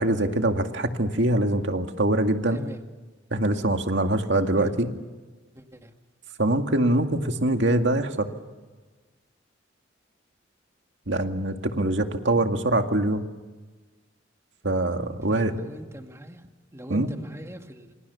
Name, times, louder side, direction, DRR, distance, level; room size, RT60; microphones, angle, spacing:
voice 1, 0.0-2.6 3.3-4.9 6.4-8.3 11.1-13.2 14.6-15.5 16.9-17.1, right 1 dB, 70° right, 5 dB, 2.2 m, -23 dB
voice 2, 2.5-2.9 4.6-4.7 5.6-5.9 15.3-17.9, equal, 15° right, 5 dB, 2.0 m, -42 dB
28.0 x 26.5 x 7.0 m, 1.3 s
head